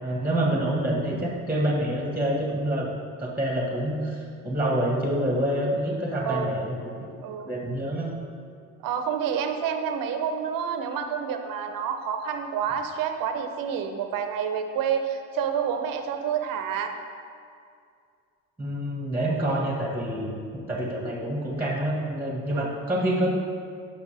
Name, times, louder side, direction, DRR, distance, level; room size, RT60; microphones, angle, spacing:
voice 1, 0.0-2.9 3.2-6.8 7.5-8.1 18.6-20.3 20.7-23.3, right 1 dB, 5° right, -2 dB, 1.7 m, -27 dB
voice 2, 8.8-16.9 19.5-19.7 22.5-22.7, right 7 dB, 60° right, 6 dB, 0.9 m, -29 dB
9.7 x 6.0 x 3.4 m, 2.3 s
supercardioid pair, 80°, 37 cm